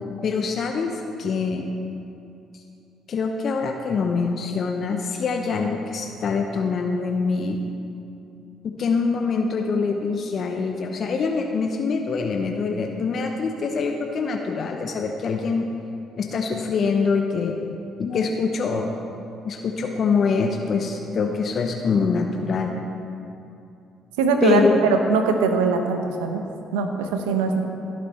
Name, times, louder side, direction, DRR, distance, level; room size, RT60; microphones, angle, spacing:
voice 1, 0.2-1.7 3.1-7.6 8.6-15.7 16.2-17.6 18.0-18.9 19.4-22.8 24.4-25.0, left 4 dB, 55° left, 3 dB, 0.8 m, -24 dB
voice 2, 24.2-24.6 25.1-26.4 26.7-27.6, right 5 dB, 85° right, 5 dB, 0.9 m, -21 dB
17.0 x 6.5 x 4.3 m, 2.7 s
hypercardioid pair, 55°, 0 cm